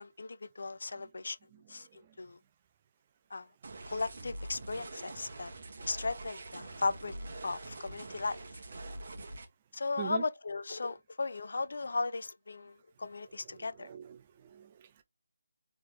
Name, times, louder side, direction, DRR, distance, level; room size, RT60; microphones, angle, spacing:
voice 1, 0.0-1.4 1.7-2.4 3.3-3.5 3.9-5.5 5.9-7.1 7.4-8.4 9.7-13.9, left 3 dB, 55° left, 0.5 m, -36 dB
sound 1, 3.6-9.4, right 2 dB, 45° right, 1.2 m, -45 dB
voice 2, 13.5-15.0, right 10 dB, 25° right, 0.7 m, -43 dB
4.6 x 3.5 x 3.2 m
figure-of-eight pair, 155°, 0 cm